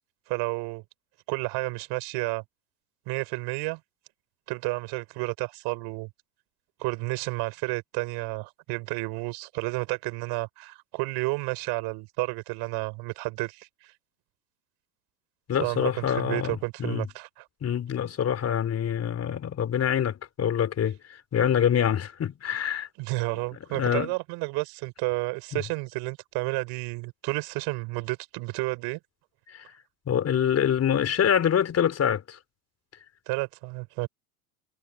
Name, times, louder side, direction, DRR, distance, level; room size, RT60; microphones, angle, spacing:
voice 1, 0.3-0.8 1.3-2.4 3.1-3.8 4.5-6.1 6.8-13.9 15.6-17.4 23.0-29.0 33.3-34.1, right 25 dB, 55° right, 6.1 m, -31 dB
voice 2, 15.5-17.1 17.6-22.9 23.7-24.1 29.5-29.6 30.1-32.4, left 9 dB, 30° left, 4.2 m, -25 dB
hypercardioid pair, 95°, 47 cm